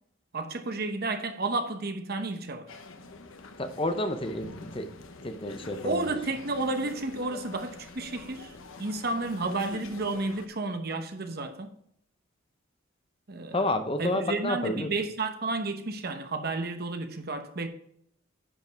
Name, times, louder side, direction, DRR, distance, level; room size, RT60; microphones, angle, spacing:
voice 1, 0.3-2.7 5.8-8.5 8.8-11.7 13.3-13.6 14.0-17.7, right 2 dB, 45° right, 0.9 m, -31 dB
sound 1, 2.7-10.5, left 3 dB, 70° left, 1.0 m, -45 dB
voice 2, 3.6-4.9 5.2-6.2 13.5-14.9, left 1 dB, 25° left, 0.6 m, -30 dB
10.0 x 5.3 x 4.6 m
head